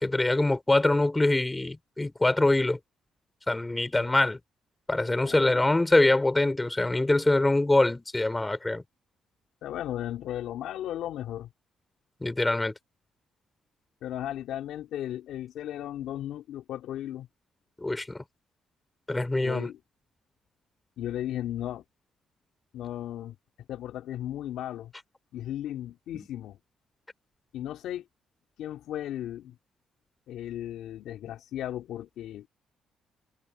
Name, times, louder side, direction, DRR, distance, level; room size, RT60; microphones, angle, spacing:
voice 1, 0.0-2.8 3.5-4.4 4.9-8.8 12.2-12.7 17.8-18.2 19.1-19.7 26.1-26.3, left 2 dB, 15° left, 4.6 m, -24 dB
voice 2, 5.2-5.7 9.6-11.5 14.0-17.3 19.4-19.8 21.0-21.8 22.7-23.4 23.7-24.9 25.3-26.6 27.5-28.0 28.6-29.6 30.3-32.5, left 12 dB, 80° left, 3.4 m, -35 dB
cardioid pair, 90°, 0 cm